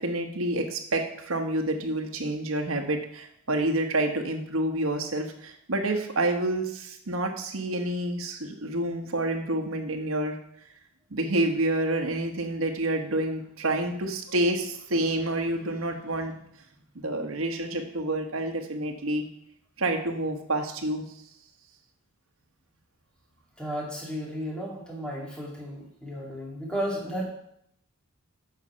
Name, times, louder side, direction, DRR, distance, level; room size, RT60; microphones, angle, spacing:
voice 1, 0.0-10.4 11.1-16.3 16.9-19.2 19.8-21.0, right 1 dB, 70° right, 4 dB, 1.2 m, -28 dB
voice 2, 23.6-27.2, equal, 5° left, -3 dB, 2.1 m, -33 dB
8.0 x 5.8 x 5.5 m, 0.72 s
head